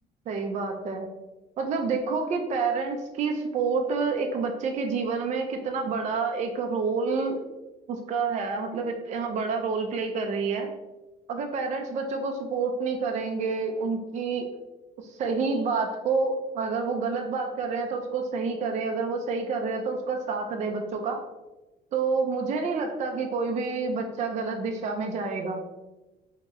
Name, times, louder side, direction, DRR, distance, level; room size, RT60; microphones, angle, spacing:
voice 1, 0.3-1.1 1.6-7.4 7.9-10.7 11.3-14.5 15.0-21.2 21.9-25.6, right 4 dB, 45° right, 3 dB, 0.4 m, -28 dB
3.0 x 2.8 x 3.4 m, 1.1 s
cardioid pair, 110°, 17 cm